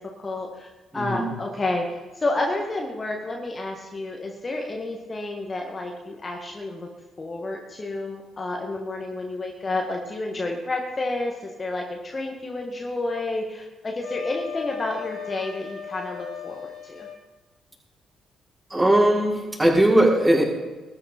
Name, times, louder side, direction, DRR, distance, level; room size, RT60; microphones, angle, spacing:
voice 1, 0.0-6.9 7.2-17.1, left 2 dB, 30° left, 1 dB, 1.9 m, -30 dB
voice 2, 0.9-1.3 18.7-20.4, right 1 dB, 20° right, -6 dB, 5.7 m, -19 dB
Wind instrument woodwind instrument, 14.0-17.2, left 8 dB, 50° left, 3.0 m, -37 dB
19.5 x 9.8 x 4.5 m, 1.2 s
figure-of-eight pair, 40°, 0 cm